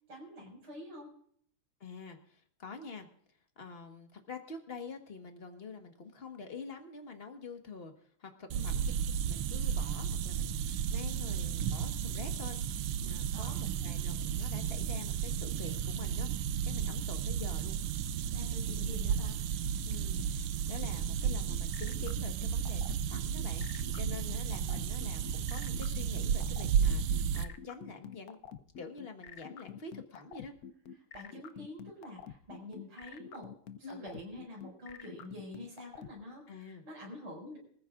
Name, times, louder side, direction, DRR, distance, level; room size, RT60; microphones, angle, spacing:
voice 1, 0.1-1.1 8.5-8.7 13.3-13.7 18.3-19.4 31.1-33.5 33.8-37.6, left 1 dB, 75° right, 0 dB, 6.8 m, -47 dB
voice 2, 1.8-3.1 3.6-8.9 9.2-16.3 16.6-17.8 19.9-22.8 23.1-28.4 28.8-30.5 33.8-34.1 36.5-36.8, left 4 dB, 30° left, 5 dB, 1.5 m, -47 dB
sound 1, 8.5-27.4, right 8 dB, 90° right, 1.7 m, -33 dB
sound 2, 21.2-36.1, left 8 dB, 65° left, 0.9 m, -47 dB
24.0 x 14.5 x 2.5 m, 0.62 s
omnidirectional pair, 2.4 m